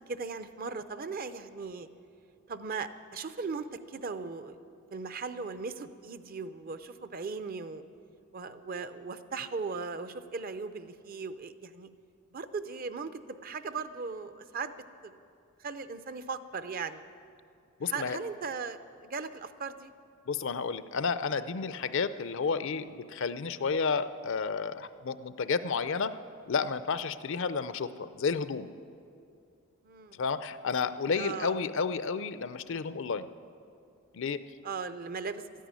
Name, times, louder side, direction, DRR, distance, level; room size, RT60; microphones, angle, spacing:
voice 1, 0.1-1.9 2.5-4.6 4.9-7.8 8.3-11.9 12.3-15.1 15.6-17.0 17.8-18.8 19.0-19.9 29.8-30.2 30.7-30.8 31.2-31.6 34.6-35.5, right 4 dB, 45° right, 11 dB, 0.6 m, -38 dB
voice 2, 17.8-18.2 20.3-26.1 26.5-28.7 30.2-33.3 34.1-34.4, left 5 dB, 60° left, 13 dB, 0.5 m, -31 dB
13.0 x 10.0 x 9.6 m, 2.5 s
head